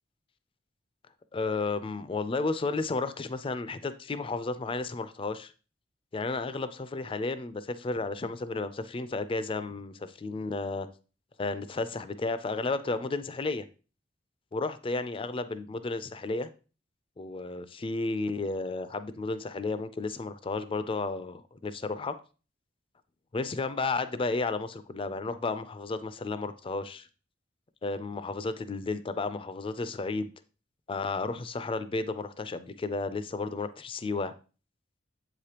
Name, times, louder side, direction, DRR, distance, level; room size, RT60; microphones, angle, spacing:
voice 1, 1.3-5.5 6.1-10.9 11.4-13.7 14.5-16.5 17.2-22.1 23.3-27.1 27.8-30.3 30.9-34.3, left 3 dB, 30° left, 13 dB, 0.4 m, -32 dB
7.4 x 4.9 x 2.9 m, 0.34 s
head